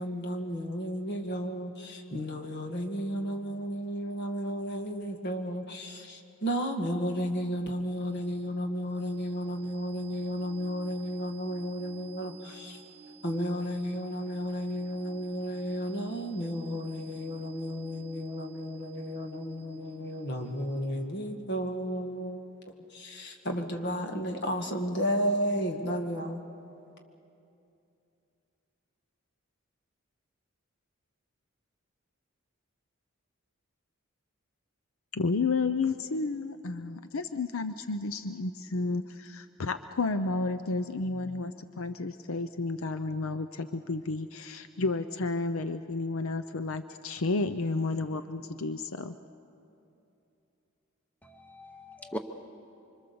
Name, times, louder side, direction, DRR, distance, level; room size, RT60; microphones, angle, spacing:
voice 1, 0.0-12.8 13.2-26.4, equal, 55° left, 4 dB, 1.9 m, -33 dB
sound 1, 7.5-21.2, right 6 dB, 10° right, 3.4 m, -55 dB
voice 2, 35.1-49.2, left 3 dB, 75° left, 11 dB, 0.6 m, -31 dB
voice 3, 51.2-52.2, equal, 5° left, 6 dB, 0.8 m, -40 dB
25.5 x 25.0 x 6.9 m, 2.8 s
head